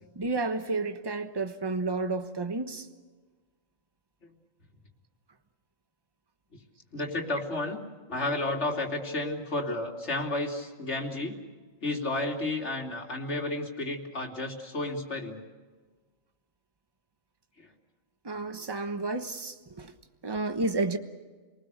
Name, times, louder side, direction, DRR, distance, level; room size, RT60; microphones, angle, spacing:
voice 1, 0.1-2.9 18.2-19.9 20.2-21.0, right 3 dB, 20° right, 7 dB, 1.1 m, -31 dB
voice 2, 6.9-7.8 8.1-11.4 11.8-15.4 17.6-17.7, left 2 dB, 60° left, 0 dB, 3.1 m, -32 dB
29.0 x 19.5 x 6.8 m, 1.4 s
omnidirectional pair, 1.4 m